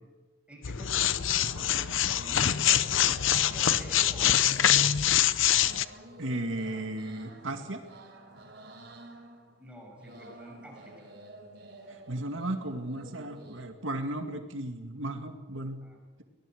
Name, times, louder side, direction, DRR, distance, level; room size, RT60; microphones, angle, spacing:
voice 1, 0.5-2.9 3.3-4.4 9.6-10.9 15.8-16.0, equal, 5° right, -1 dB, 5.9 m, -48 dB
sound 1, 0.6-5.8, left 10 dB, 85° left, 0.8 m, -25 dB
sound 2, 0.8-13.6, right 1 dB, 55° right, 3.8 m, -50 dB
voice 2, 6.2-7.8 11.9-15.8, right 1 dB, 80° right, 5 dB, 2.2 m, -35 dB
23.5 x 18.0 x 7.9 m, 1.2 s
head